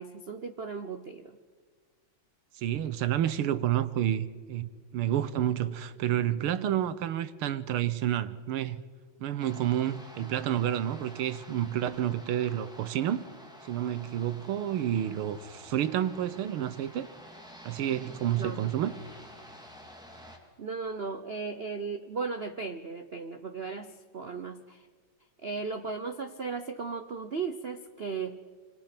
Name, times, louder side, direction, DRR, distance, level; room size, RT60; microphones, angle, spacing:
voice 1, 0.0-1.4 18.4-18.6 20.6-24.9 25.4-28.4, right 4 dB, 60° right, 0.6 m, -36 dB
voice 2, 2.6-8.8 9.2-13.3 13.6-17.1 17.6-18.9, right 11 dB, 90° right, 1.9 m, -29 dB
sound 1, 9.4-20.4, equal, ahead, 2.9 m, -50 dB
27.5 x 24.5 x 5.9 m
omnidirectional pair, 2.3 m